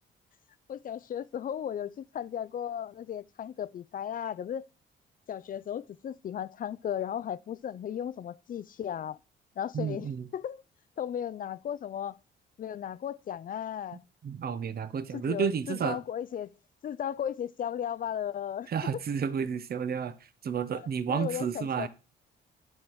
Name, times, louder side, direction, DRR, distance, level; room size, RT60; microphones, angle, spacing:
voice 1, 0.7-4.6 5.3-9.2 9.6-10.6 11.0-12.2 12.6-14.0 15.1-16.5 16.8-18.7 20.7-20.8 21.1-21.9, left 9 dB, 45° left, 0.4 m, -35 dB
voice 2, 9.7-10.3 14.2-16.0 18.7-20.1 20.4-21.9, right 7 dB, 50° right, 0.9 m, -31 dB
9.7 x 5.7 x 4.7 m
cardioid pair, 90°, 20 cm